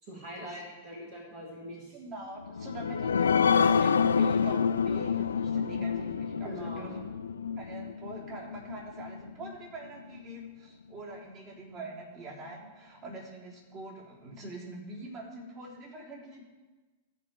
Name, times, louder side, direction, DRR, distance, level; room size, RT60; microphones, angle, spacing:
voice 1, 0.0-2.0 6.4-6.9 7.4-7.6, equal, 55° right, -3 dB, 3.0 m, -43 dB
voice 2, 1.9-7.0 7.6-16.4, right 2 dB, 40° right, -3 dB, 3.8 m, -44 dB
sound 1, 2.4-9.5 10.0-10.1 10.4-10.5, left 6 dB, 80° left, 0.4 m, -28 dB
13.0 x 5.7 x 7.7 m, 1.3 s
figure-of-eight pair, 100°, 0 cm